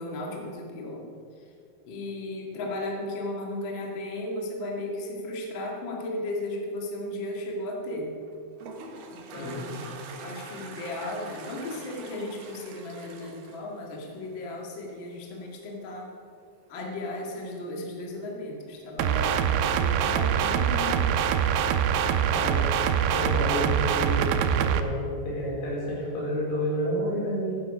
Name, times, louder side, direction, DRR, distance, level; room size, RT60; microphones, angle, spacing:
voice 1, 0.0-1.5 1.9-8.1 9.1-9.9 10.2-16.1 16.7-21.2 21.9-22.0 22.3-22.7, left 1 dB, 55° left, -1 dB, 1.3 m, -35 dB
Toilet flush, 8.2-14.6, right 3 dB, 65° right, 2.3 m, -44 dB
voice 2, 9.3-9.8 22.3-22.6 23.1-24.2 24.6-27.5, equal, 75° left, -5 dB, 6.5 m, -30 dB
sound 1, 19.0-24.8, right 9 dB, 85° right, 3.0 m, -24 dB
15.0 x 11.5 x 5.5 m, 2.5 s
omnidirectional pair, 5.5 m